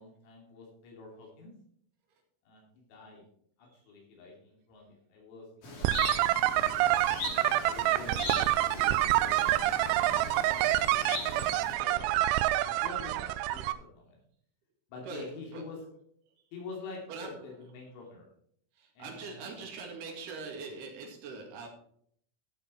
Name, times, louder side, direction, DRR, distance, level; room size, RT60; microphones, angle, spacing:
voice 1, 0.0-1.5 2.4-3.2 3.6-7.0 7.6-10.9 11.3-14.2 14.9-15.8 16.5-18.3 19.0-19.7, left 3 dB, 85° left, -2 dB, 5.6 m, -48 dB
sound 1, 5.6-11.7, left 2 dB, 50° left, 3.2 m, -40 dB
sound 2, 5.8-13.7, right 15 dB, 85° right, 3.2 m, -27 dB
voice 2, 15.1-15.6 17.1-17.4 18.8-21.7, right 4 dB, 60° right, 1 dB, 3.7 m, -42 dB
14.0 x 6.8 x 4.4 m, 0.64 s
omnidirectional pair, 5.9 m